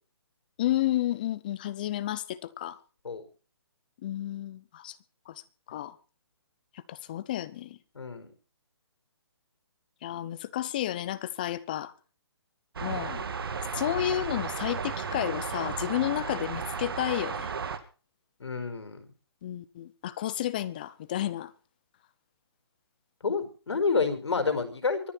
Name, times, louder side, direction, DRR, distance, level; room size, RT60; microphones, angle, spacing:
voice 1, 0.6-2.8 4.0-5.0 5.3-5.4 5.7-6.0 6.9-7.8 10.0-11.9 12.8-13.2 13.7-17.5 19.4-21.5, left 13 dB, 20° left, 0.7 m, -31 dB
voice 2, 7.9-8.3 18.4-19.0 23.2-25.1, left 4 dB, 85° left, 5.0 m, -29 dB
sound 1, 12.8-17.8, right 5 dB, 60° right, 2.3 m, -34 dB
24.0 x 9.9 x 4.5 m
hypercardioid pair, 175°, 14 cm